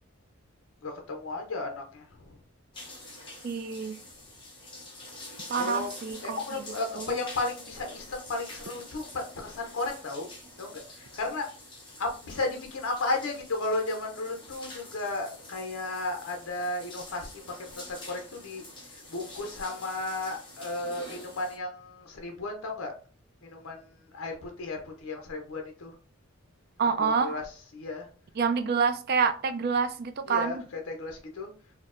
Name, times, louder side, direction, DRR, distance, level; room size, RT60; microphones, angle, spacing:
voice 1, 0.8-2.3 5.6-5.9 6.2-10.3 10.6-11.5 12.0-17.3 17.8-18.6 18.9-22.9 23.4-23.9 24.1-25.9 27.0-27.4 27.7-28.1 30.3-31.5, left 2 dB, 75° left, 2 dB, 0.5 m, -34 dB
sound 1, 2.7-21.6, left 1 dB, 20° left, 0.8 m, -47 dB
voice 2, 3.4-4.0 5.5-7.2 26.8-27.4 28.4-30.7, right 5 dB, 45° right, 9 dB, 0.3 m, -28 dB
4.2 x 2.0 x 2.4 m, 0.39 s
head